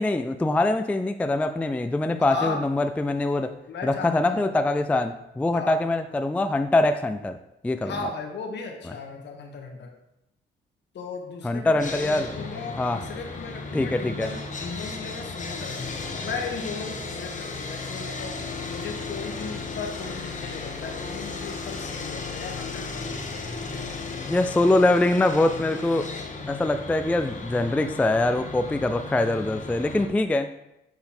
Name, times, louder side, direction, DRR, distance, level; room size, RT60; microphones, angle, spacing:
voice 1, 0.0-3.5 3.8-7.4 7.6-7.9 11.4-12.5 12.8-13.0 13.7-14.3 24.3-26.1 26.5-30.5, left 2 dB, 5° left, 8 dB, 0.3 m, -23 dB
voice 2, 2.2-2.6 3.7-4.5 5.5-5.8 7.8-9.9 10.9-18.4 18.7-24.0, left 4 dB, 60° left, 3 dB, 1.3 m, -36 dB
Sawing, 11.8-30.1, left 4 dB, 40° left, 1.2 m, -35 dB
7.5 x 4.1 x 4.3 m, 0.87 s
cardioid pair, 90°, 20 cm